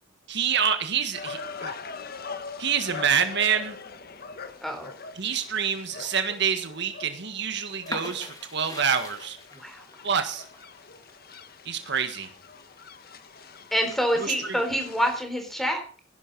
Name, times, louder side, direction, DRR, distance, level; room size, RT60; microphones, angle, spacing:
voice 1, 0.3-1.7 2.6-3.8 5.1-9.4 10.0-10.4 11.6-12.3 14.2-14.6, right 7 dB, 60° right, 8 dB, 1.6 m, -27 dB
sound 1, 1.1-15.2, left 4 dB, 50° left, 1.5 m, -42 dB
sound 2, 7.8-13.5 13.9-14.8, left 2 dB, 20° left, 2.7 m, -42 dB
voice 2, 9.5-9.8 13.7-15.8, equal, ahead, 5 dB, 3.8 m, -27 dB
16.0 x 11.0 x 5.4 m, 0.39 s
head